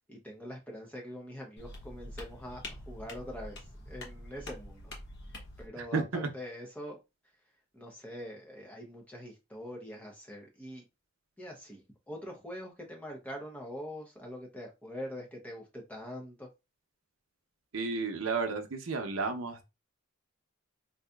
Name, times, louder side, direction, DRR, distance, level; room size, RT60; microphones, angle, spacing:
voice 1, 0.1-4.9 5.6-7.0 7.7-10.8 11.4-16.5, equal, 5° left, 0.7 m, -44 dB
sound 1, 1.6-5.7, left 1 dB, 55° left, 1.0 m, -45 dB
voice 2, 5.8-6.3 17.7-19.6, right 4 dB, 80° right, 0.7 m, -32 dB
3.9 x 2.6 x 2.3 m
head